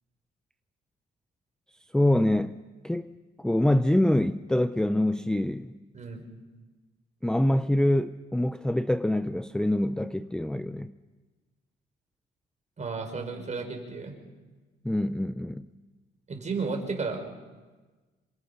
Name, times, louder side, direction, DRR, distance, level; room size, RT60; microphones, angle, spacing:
voice 1, 1.9-5.8 7.2-10.9 14.8-15.7, left 1 dB, 5° left, 0.6 m, -25 dB
voice 2, 12.8-14.2 16.3-17.2, right 4 dB, 35° right, 5.2 m, -33 dB
27.0 x 22.0 x 5.8 m
cardioid pair, 90°, 20 cm